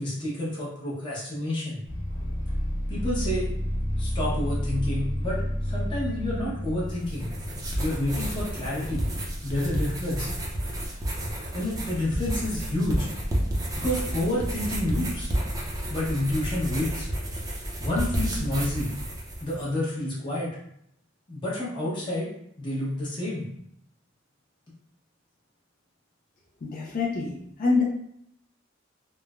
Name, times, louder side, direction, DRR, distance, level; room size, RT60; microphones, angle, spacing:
voice 1, 0.0-1.8 2.9-3.5 4.0-7.3 7.8-9.1 9.4-10.3 11.5-13.1 13.8-15.3 15.9-17.1 17.8-18.9 19.4-20.6 21.3-22.3 22.6-23.5, left 1 dB, 25° left, -7 dB, 0.8 m, -29 dB
sound 1, 1.8-9.8, equal, 70° left, 0.8 m, -31 dB
sound 2, 6.9-19.6, right 1 dB, 20° right, 0.5 m, -31 dB
voice 2, 26.6-27.8, left 3 dB, 45° left, -3 dB, 0.4 m, -26 dB
3.1 x 2.1 x 2.3 m, 0.72 s
head